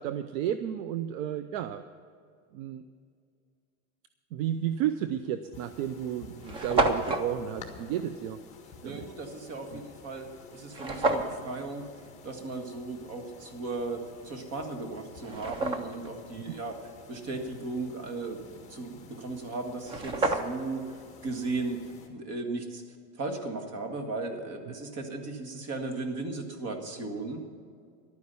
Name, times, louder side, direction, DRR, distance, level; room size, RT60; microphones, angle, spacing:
voice 1, 0.0-1.8 2.5-2.8 4.3-8.4 8.8-9.0 9.7-9.8 16.3-16.4, right 10 dB, 60° right, 12 dB, 0.7 m, -32 dB
sound 1, 4.9-5.1 5.8-5.9 6.1-6.2 6.4-7.3 10.7-11.4 14.3-14.4 14.9-16.1 19.4-19.5 19.8-20.8, right 2 dB, 15° right, 0.3 m, -29 dB
sound 2, 5.5-22.1, left 4 dB, 15° left, 1.7 m, -51 dB
voice 2, 8.8-11.9 12.2-16.8 17.1-22.8 23.2-27.5, right 3 dB, 35° right, 5 dB, 1.8 m, -36 dB
12.0 x 9.6 x 6.9 m, 2.3 s
supercardioid pair, 150°, 44 cm